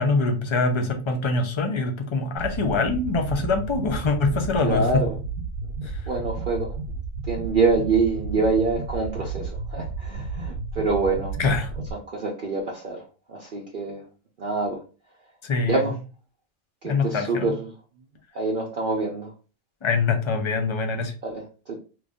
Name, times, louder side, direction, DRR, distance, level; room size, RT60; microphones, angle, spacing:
voice 1, 0.0-5.0 5.8-6.0 11.4-11.7 15.4-15.8 16.8-17.5 19.8-21.1, left 3 dB, 40° left, 4 dB, 0.4 m, -24 dB
sound 1, 2.4-11.9, right 4 dB, 65° right, 1.0 m, -32 dB
voice 2, 4.6-5.1 6.1-6.7 7.3-11.3 11.9-14.0 14.4-14.8 15.6-15.9 16.8-17.7 18.3-19.3 21.2-21.8, right 3 dB, 50° right, -2 dB, 0.7 m, -26 dB
3.1 x 2.6 x 3.5 m, 0.34 s
omnidirectional pair, 1.3 m